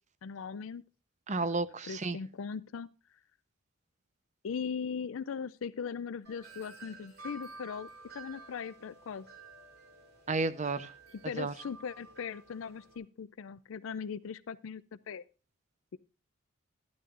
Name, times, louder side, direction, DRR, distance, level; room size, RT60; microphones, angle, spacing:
voice 1, 0.2-0.8 1.4-1.6 1.8-2.9 4.4-9.3 11.2-15.2, left 6 dB, 70° left, 15 dB, 0.4 m, -39 dB
voice 2, 1.3-2.2 10.3-10.9 11.4-11.5, right 3 dB, 35° right, 14 dB, 0.7 m, -32 dB
Wind chime, 6.2-13.0, right 3 dB, 50° right, 3.5 m, -51 dB
12.5 x 12.0 x 2.5 m, 0.34 s
head